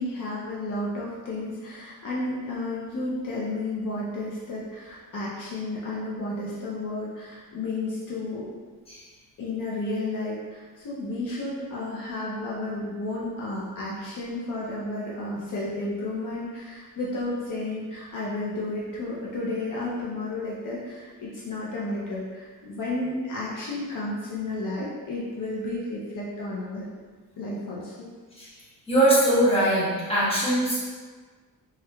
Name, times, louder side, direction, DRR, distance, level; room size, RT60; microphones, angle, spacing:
voice 1, 0.0-8.5 9.4-26.9 27.4-28.1, left 2 dB, 65° left, -6 dB, 0.6 m, -32 dB
voice 2, 28.9-30.8, right 1 dB, 15° left, -10 dB, 1.2 m, -21 dB
4.4 x 2.3 x 2.2 m, 1.5 s
wide cardioid pair, 165°, 35 cm